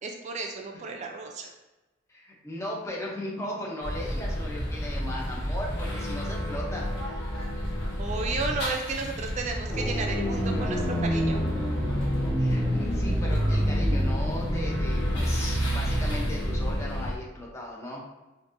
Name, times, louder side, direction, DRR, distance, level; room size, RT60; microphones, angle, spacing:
voice 1, 0.0-1.5 8.0-11.4, right 4 dB, 35° right, 2 dB, 0.3 m, -33 dB
voice 2, 2.1-7.2 12.4-18.0, left 1 dB, 15° left, -3 dB, 0.6 m, -37 dB
sound 1, 3.8-17.2, equal, 65° left, 0.9 m, -32 dB
sound 2, 9.7-16.7, equal, 10° right, 0.9 m, -27 dB
3.9 x 2.6 x 2.5 m, 1.1 s
head